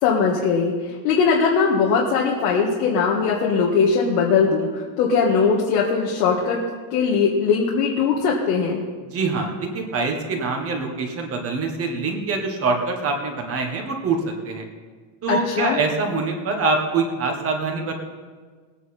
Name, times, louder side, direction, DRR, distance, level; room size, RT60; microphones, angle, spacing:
voice 1, 0.0-6.6 6.9-8.8 15.3-15.8, left 5 dB, 85° left, -3 dB, 1.9 m, -20 dB
voice 2, 9.1-14.7 15.2-17.9, right 3 dB, 30° right, 3 dB, 1.5 m, -24 dB
20.0 x 9.2 x 4.3 m, 1.5 s
cardioid pair, 175°, 48 cm